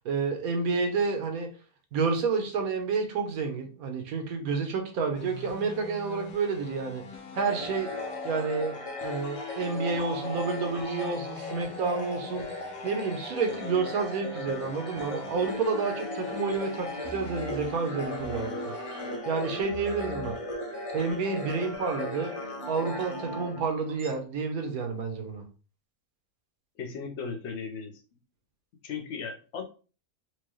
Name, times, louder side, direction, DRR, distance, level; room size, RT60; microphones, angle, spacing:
voice 1, 0.0-1.5 1.9-7.0 7.3-7.9 8.2-8.8 9.0-12.5 12.8-18.7 19.3-20.4 20.9-22.3 22.7-25.4, right 4 dB, 70° right, 4 dB, 1.2 m, -29 dB
sound 1, 5.1-19.2, left 5 dB, 85° left, 1.2 m, -44 dB
sound 2, 7.4-24.1, left 1 dB, 30° left, 0.8 m, -38 dB
sound 3, 15.7-24.1, equal, 40° right, 0.8 m, -42 dB
voice 2, 26.8-28.0 28.8-29.6, left 5 dB, 55° left, 5 dB, 0.9 m, -36 dB
4.5 x 2.3 x 3.1 m, 0.36 s
omnidirectional pair, 1.6 m